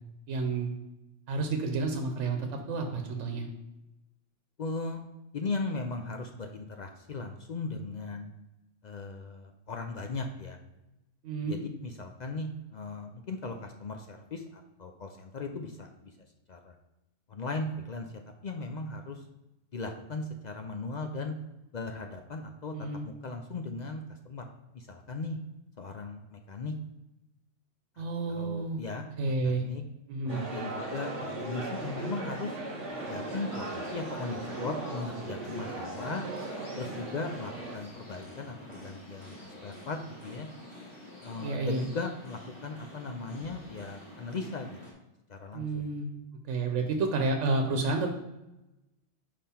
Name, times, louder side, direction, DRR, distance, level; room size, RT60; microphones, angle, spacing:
voice 1, 0.3-0.7 1.3-3.5 11.2-11.6 22.7-23.0 28.0-28.8 29.2-29.6 30.1-30.4 41.4-41.8 45.5-46.1 46.4-48.1, right 3 dB, 90° right, 4 dB, 1.1 m, -30 dB
voice 2, 4.6-5.0 5.3-8.3 8.8-10.6 11.4-15.9 16.5-16.7 17.3-18.1 18.4-19.2 19.7-21.3 21.7-22.7 23.0-24.4 24.7-25.4 25.8-26.7 28.0-29.8 30.3-32.6 33.1-36.3 36.8-40.5 41.2-44.8 45.3-45.9, left 3 dB, 55° left, 4 dB, 0.5 m, -38 dB
sound 1, 30.3-37.8, right 2 dB, 30° right, 1.4 m, -38 dB
sound 2, 32.9-44.9, left 1 dB, 25° left, 1.4 m, -49 dB
5.5 x 5.1 x 4.3 m, 0.95 s
omnidirectional pair, 1.2 m